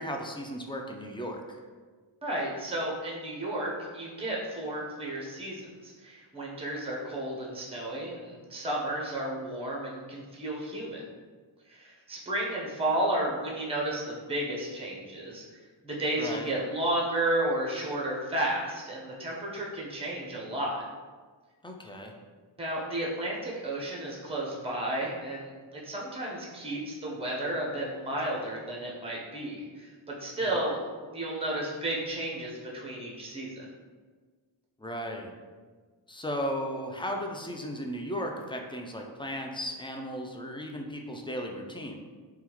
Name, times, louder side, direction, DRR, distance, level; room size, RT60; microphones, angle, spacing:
voice 1, 0.0-1.6 16.2-16.5 21.6-22.1 34.8-35.3 36.1-42.0, equal, 10° left, 1 dB, 0.3 m, -35 dB
voice 2, 2.2-11.0 11.7-15.4 15.8-20.8 22.6-30.8 31.1-33.6, right 1 dB, 15° right, -3 dB, 0.7 m, -32 dB
3.5 x 2.3 x 2.9 m, 1.5 s
wide cardioid pair, 50°, 46 cm